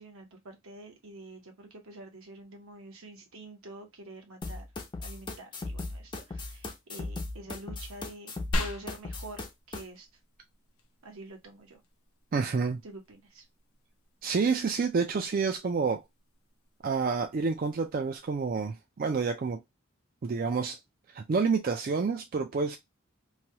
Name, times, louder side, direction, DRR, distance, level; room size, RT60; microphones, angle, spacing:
voice 1, 0.0-4.7 5.0-10.1 11.0-11.8 12.8-13.5, right 1 dB, 75° right, 1.0 m, -47 dB
sound 1, 4.4-9.8, left 2 dB, 20° left, 0.5 m, -37 dB
sound 2, 8.5-18.5, left 1 dB, 90° left, 0.7 m, -42 dB
voice 2, 12.3-12.8 14.2-16.0 16.8-19.6 20.2-20.8 21.1-22.8, right 5 dB, 40° right, 0.3 m, -28 dB
3.1 x 2.3 x 2.7 m
head